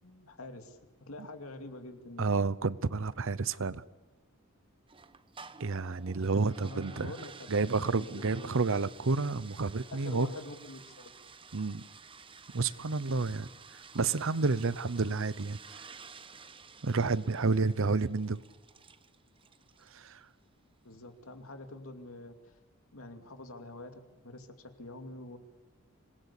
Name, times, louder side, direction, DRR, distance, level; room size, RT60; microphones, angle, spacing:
voice 1, 0.0-2.4 6.6-8.6 9.9-11.1 20.8-22.6 22.9-25.4, left 2 dB, 80° left, 6 dB, 2.6 m, -46 dB
voice 2, 2.2-3.8 5.6-7.1 7.5-10.3 11.5-11.8 12.5-15.9 16.8-18.4 19.9-20.3, right 4 dB, 65° right, 18 dB, 0.8 m, -30 dB
sound 1, 4.9-20.1, right 5 dB, 25° right, 1.0 m, -52 dB
26.0 x 20.0 x 8.4 m, 1.1 s
head